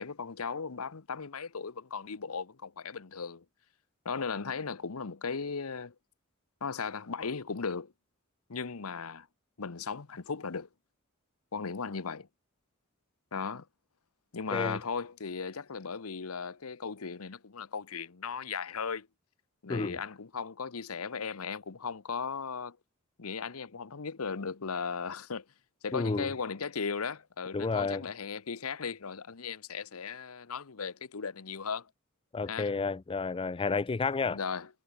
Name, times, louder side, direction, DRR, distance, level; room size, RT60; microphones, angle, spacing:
voice 1, 0.0-3.4 4.0-5.9 6.6-7.9 8.5-9.3 9.6-10.7 11.5-12.3 13.3-13.6 14.3-19.1 19.6-22.8 23.2-25.4 25.8-31.9 32.5-32.7 34.3-34.7, left 5 dB, 85° left, 0.9 m, -37 dB
voice 2, 25.9-26.3 27.5-28.0 32.3-34.4, left 4 dB, 25° left, 0.4 m, -31 dB
head